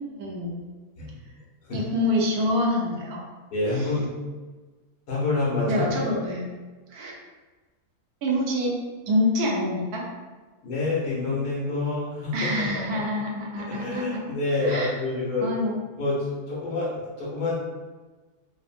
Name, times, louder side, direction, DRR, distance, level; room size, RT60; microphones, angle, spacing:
voice 1, 0.1-0.6 1.7-3.2 3.7-3.9 5.7-6.5 6.9-7.1 8.2-8.7 9.1-10.0 12.3-14.3 14.6-14.9 15.4-15.8, left 1 dB, 75° right, -3 dB, 1.1 m, -26 dB
voice 2, 3.5-4.1 5.1-5.9 10.6-13.0 13.7-15.5 16.0-16.2 16.5-17.5, left 3 dB, 90° left, -6 dB, 1.5 m, -27 dB
3.5 x 2.0 x 2.4 m, 1.3 s
omnidirectional pair, 1.7 m